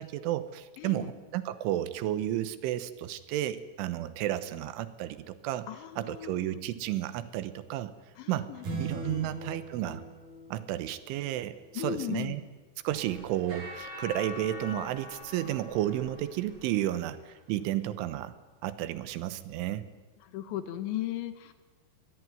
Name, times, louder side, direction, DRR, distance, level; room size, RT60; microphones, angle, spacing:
voice 1, 0.0-5.7 6.0-7.9 8.3-8.5 8.8-10.0 10.5-12.4 12.8-18.3 18.6-19.9, right 13 dB, 80° right, 13 dB, 3.4 m, -32 dB
voice 2, 0.8-1.1 5.7-6.6 8.2-8.7 9.1-9.3 11.8-12.3 20.2-21.5, left 13 dB, 75° left, 10 dB, 3.5 m, -37 dB
sound 1, 8.6-11.3, right 3 dB, 50° right, 6.1 m, -38 dB
sound 2, 12.9-17.2, left 3 dB, 30° right, 4.9 m, -45 dB
22.5 x 21.0 x 9.5 m, 1.2 s
omnidirectional pair, 5.7 m